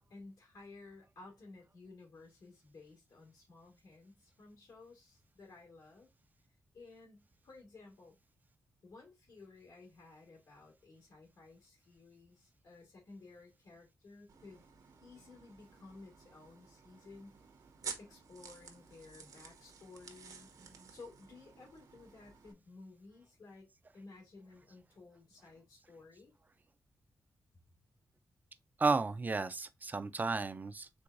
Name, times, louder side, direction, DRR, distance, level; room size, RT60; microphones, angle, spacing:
voice 1, 0.1-6.1 6.7-8.2 8.8-14.6 15.0-17.4 18.0-20.5 20.9-23.7 23.9-26.3, left 3 dB, 70° left, 2.5 m, -55 dB
sound 1, 14.3-22.5, right 6 dB, 70° right, 1.0 m, -52 dB
voice 2, 28.8-31.0, right 3 dB, 25° right, 0.5 m, -34 dB
4.6 x 3.6 x 2.6 m
wide cardioid pair, 120°, 6 cm